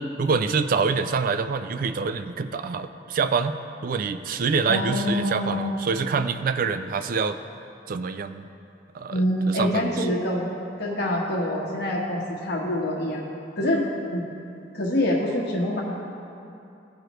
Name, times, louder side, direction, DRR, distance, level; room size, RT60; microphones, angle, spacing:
voice 1, 0.2-3.5 3.8-7.4 7.9-8.5 8.9-10.1, right 5 dB, 50° right, 10 dB, 0.3 m, -26 dB
voice 2, 4.7-5.7 9.1-10.5 10.8-13.3 13.6-13.8 14.1-14.2 14.7-15.8, left 1 dB, 60° left, -4 dB, 1.3 m, -25 dB
14.5 x 4.9 x 3.1 m, 2.7 s
head